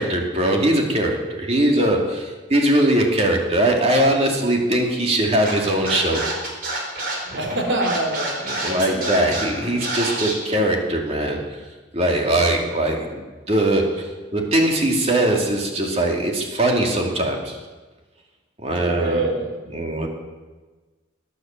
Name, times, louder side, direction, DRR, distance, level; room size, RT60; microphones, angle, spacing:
voice 1, 0.0-6.2 8.6-11.4 11.9-17.6 18.6-19.3 19.7-20.1, right 1 dB, 30° right, 1 dB, 2.5 m, -21 dB
Scratching (performance technique), 5.4-10.3, right 2 dB, 45° right, 4.6 m, -27 dB
voice 2, 7.3-9.3 18.8-19.9, right 1 dB, 70° right, 2 dB, 3.6 m, -26 dB
18.5 x 10.0 x 7.6 m, 1.3 s
head